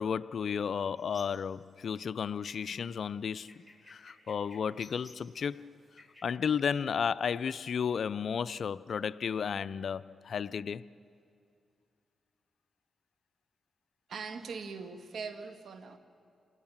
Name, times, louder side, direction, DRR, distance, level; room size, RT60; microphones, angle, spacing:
voice 1, 0.0-3.5 3.9-5.7 6.2-10.8, left 7 dB, 65° left, 0.5 m, -33 dB
sound 1, 1.0-6.2, left 2 dB, 10° left, 4.1 m, -59 dB
voice 2, 14.1-16.0, right 5 dB, 70° right, 1.7 m, -41 dB
28.5 x 19.0 x 7.3 m
cardioid pair, 65°, 0 cm